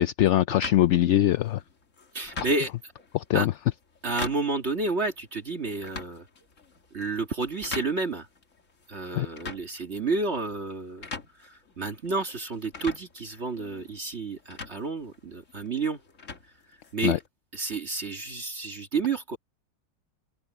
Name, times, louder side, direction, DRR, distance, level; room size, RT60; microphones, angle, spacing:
voice 1, 0.0-1.6 2.4-2.5 3.1-3.5 9.1-9.3 17.0-17.2, left 13 dB, 70° left, 0.7 m, -22 dB
sound 1, 0.6-17.3, left 4 dB, 50° left, 2.4 m, -44 dB
voice 2, 2.1-2.7 3.3-3.5 4.0-6.2 6.9-8.3 8.9-11.0 11.4-16.0 16.9-17.2 17.5-19.4, right 3 dB, 45° right, 2.0 m, -30 dB
open air
omnidirectional pair, 1.6 m